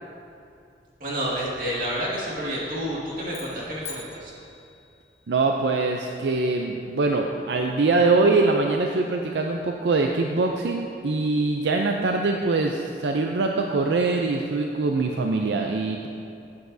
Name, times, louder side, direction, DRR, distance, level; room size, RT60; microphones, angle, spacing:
voice 1, 1.0-4.3, equal, 50° right, -6 dB, 2.0 m, -29 dB
sound 1, 3.2-5.6, left 5 dB, 40° left, 1.1 m, -43 dB
voice 2, 5.3-16.1, right 3 dB, 80° right, 2 dB, 0.5 m, -23 dB
12.5 x 8.2 x 2.7 m, 2.5 s
head